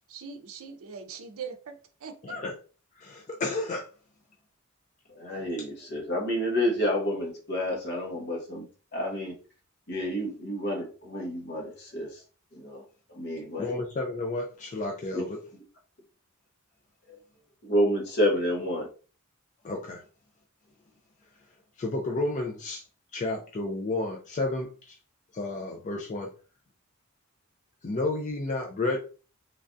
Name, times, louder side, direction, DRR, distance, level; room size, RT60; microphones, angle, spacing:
voice 1, 0.1-1.7 2.0-2.3, right 6 dB, 65° right, 5 dB, 0.5 m, -41 dB
voice 2, 2.2-2.5 3.0-3.9 13.6-15.4 19.6-20.0 21.8-22.8 23.1-25.0 25.3-26.3 27.8-29.0, left 2 dB, 35° left, 1 dB, 0.3 m, -31 dB
voice 3, 5.2-8.7 8.9-9.3 9.9-12.2 12.5-12.8 13.1-13.7 15.1-15.2 17.1-17.2 17.6-18.9, equal, 50° left, -1 dB, 1.0 m, -29 dB
3.2 x 2.3 x 2.5 m, 0.36 s
head